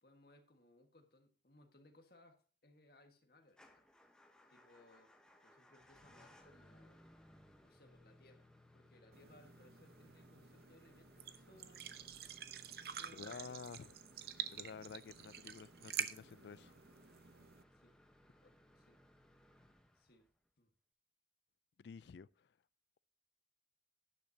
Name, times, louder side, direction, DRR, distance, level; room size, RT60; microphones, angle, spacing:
voice 1, 0.0-3.8 4.5-5.1 5.4-7.1 7.6-12.3 12.9-14.0 14.8-14.9 15.2-15.4 17.7-18.0 18.4-19.0 19.9-20.3 20.6-20.7, left 1 dB, 60° left, 1.6 m, -66 dB
Motor vehicle (road) / Engine starting / Idling, 3.5-20.5, left 1 dB, 5° left, 1.0 m, -65 dB
sound 1, 9.1-17.6, right 8 dB, 60° right, 0.7 m, -48 dB
voice 2, 13.1-13.9 14.5-16.7 21.8-22.5, left 5 dB, 75° left, 0.4 m, -51 dB
11.5 x 10.5 x 2.8 m
head